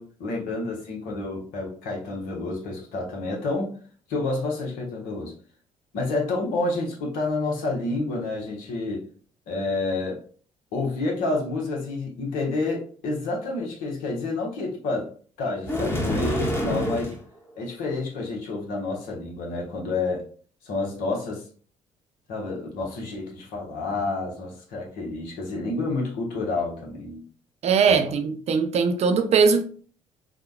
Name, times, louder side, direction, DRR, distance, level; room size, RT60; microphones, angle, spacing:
voice 1, 0.0-3.7 4.1-5.3 5.9-9.1 9.5-10.2 10.7-15.1 15.4-17.1 17.5-20.3 20.6-21.4 22.3-27.2 27.9-28.1, left 3 dB, 65° left, 1.0 m, -29 dB
sound 1, 15.6-17.2, equal, 15° left, 1.0 m, -26 dB
voice 2, 27.6-29.8, right 5 dB, 45° right, 0.6 m, -21 dB
4.8 x 2.2 x 2.3 m
hypercardioid pair, 50°, 15 cm